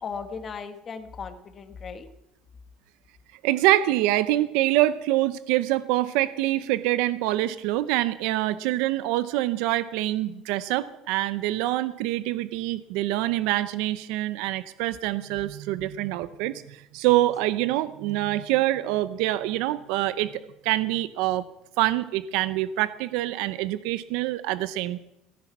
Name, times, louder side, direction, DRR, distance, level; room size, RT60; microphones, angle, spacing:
voice 1, 0.0-2.1, left 5 dB, 30° left, 8 dB, 1.3 m, -37 dB
voice 2, 3.4-21.4 21.8-25.0, right 15 dB, 80° right, 15 dB, 0.6 m, -25 dB
17.0 x 10.5 x 6.0 m, 0.88 s
cardioid pair, 155°, 0 cm